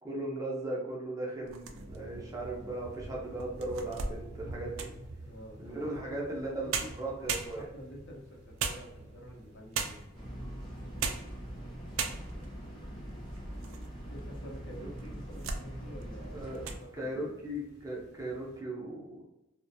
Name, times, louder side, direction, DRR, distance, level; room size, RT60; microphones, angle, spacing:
voice 1, 0.0-4.9 5.6-7.7 14.8-14.9 16.3-16.6 16.9-19.2, right 1 dB, 15° right, -3 dB, 0.5 m, -37 dB
sound 1, 1.4-2.2 2.8-2.9 3.4-5.1 6.4-6.5 6.7-7.9 8.6-9.3 9.7-10.2 10.8-11.4 11.6-11.7 12.0-12.5 13.1-13.9 14.2-14.3 15.0-15.7 16.0-16.2 16.5-16.8, right 5 dB, 75° right, 0.3 m, -36 dB
sound 2, 1.7-18.6, right 1 dB, 55° right, 0.8 m, -51 dB
voice 2, 5.2-6.9 7.2-10.2 14.1-16.4 16.8-17.4, equal, 60° left, -1 dB, 0.7 m, -49 dB
sound 3, 10.1-16.8, equal, 20° left, 0.7 m, -43 dB
2.4 x 2.1 x 2.6 m, 0.92 s
head